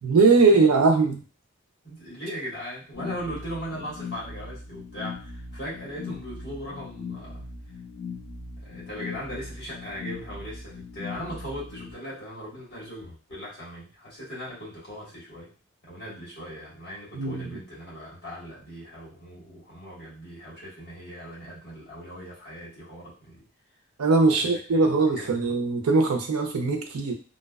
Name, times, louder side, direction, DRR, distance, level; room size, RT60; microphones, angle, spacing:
voice 1, 0.0-1.2 17.1-17.5 24.0-27.1, right 3 dB, 85° right, 3 dB, 0.5 m, -20 dB
voice 2, 1.8-7.4 8.6-15.5 15.8-23.4 24.3-24.6 24.9-25.5, equal, 45° left, -6 dB, 1.4 m, -39 dB
sound 1, 2.9-11.9, left 4 dB, 65° left, 1.0 m, -39 dB
2.6 x 2.2 x 2.2 m, 0.36 s
head